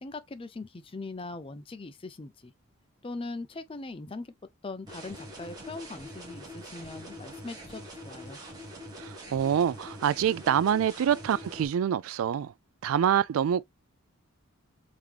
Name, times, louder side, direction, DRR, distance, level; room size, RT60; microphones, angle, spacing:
voice 1, 0.0-2.5 3.0-4.3 4.6-8.4, left 3 dB, 25° left, 0.4 m, -40 dB
sound 1, 4.9-11.7, equal, 20° right, 1.3 m, -44 dB
voice 2, 9.0-12.5 12.8-13.6, right 9 dB, 80° right, 0.3 m, -26 dB
3.7 x 2.9 x 3.2 m
head